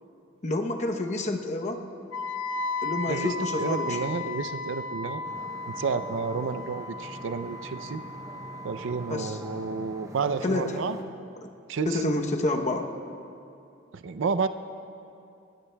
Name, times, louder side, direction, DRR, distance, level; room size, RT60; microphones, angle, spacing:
voice 1, 0.4-1.8 2.8-4.0 9.0-9.4 10.4-10.8 11.4-11.5 11.9-12.9, left 2 dB, 35° left, 4 dB, 0.8 m, -28 dB
Wind instrument woodwind instrument, 2.1-10.0, left 3 dB, 70° left, 0.6 m, -36 dB
voice 2, 3.1-5.2 5.7-8.0 8.6-11.0 11.7-12.1 13.9-14.5, right 5 dB, 65° right, 10 dB, 0.5 m, -30 dB
sound 1, 5.2-11.0, equal, 15° right, 0.8 m, -45 dB
21.5 x 19.5 x 2.3 m, 2.6 s
head